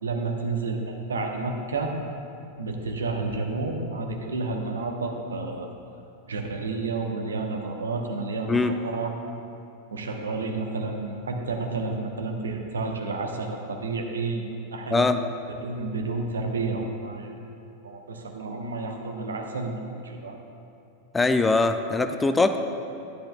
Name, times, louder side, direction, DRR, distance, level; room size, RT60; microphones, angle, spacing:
voice 1, 0.0-1.9 2.6-5.7 6.3-9.1 9.9-14.5 14.7-15.1 15.6-17.3 17.8-20.4, right 3 dB, 70° right, 3 dB, 0.9 m, -30 dB
voice 2, 21.1-22.6, left 3 dB, 10° left, 8 dB, 0.4 m, -22 dB
13.0 x 10.0 x 2.3 m, 2.7 s
figure-of-eight pair, 90°, 0 cm